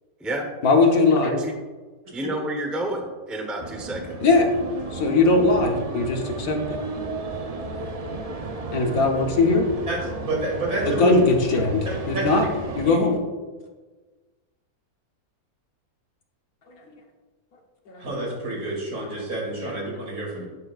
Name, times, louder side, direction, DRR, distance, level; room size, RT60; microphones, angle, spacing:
voice 1, 0.6-1.3 4.2-4.5 4.9-6.8 8.7-9.7 10.8-11.8 12.1-12.5 12.8-13.2 17.9-18.0, left 3 dB, 70° left, 2 dB, 1.6 m, -20 dB
voice 2, 2.1-4.2, right 1 dB, ahead, 3 dB, 0.7 m, -30 dB
sound 1, 3.6-13.0, right 3 dB, 40° right, 0.5 m, -33 dB
voice 3, 9.9-11.2 12.1-12.3 12.9-13.0 18.0-20.4, right 2 dB, 80° right, -3 dB, 3.3 m, -28 dB
11.5 x 8.2 x 2.4 m, 1.3 s
omnidirectional pair, 1.6 m